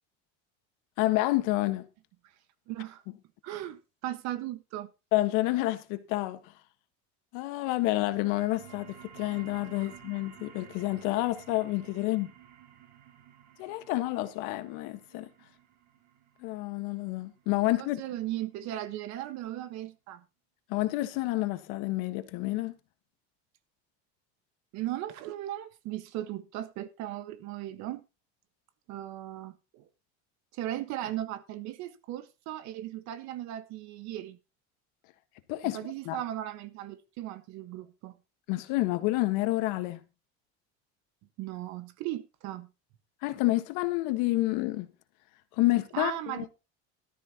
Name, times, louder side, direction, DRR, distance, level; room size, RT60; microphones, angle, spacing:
voice 1, 1.0-1.9 5.1-6.5 7.3-12.3 13.6-15.3 16.4-18.0 20.7-22.8 35.5-35.8 36.0-36.2 38.5-40.0 43.2-44.9 45.5-46.5, left 18 dB, 65° left, 1.5 m, -29 dB
voice 2, 2.7-3.0 3.4-4.9 18.0-20.2 24.7-28.0 28.9-29.9 30.5-34.4 35.6-38.1 41.4-42.7 45.9-46.5, right 13 dB, 55° right, 1.5 m, -37 dB
sound 1, 8.0-19.1, right 10 dB, 85° right, 6.2 m, -53 dB
15.0 x 13.0 x 3.0 m
cardioid pair, 165°, 34 cm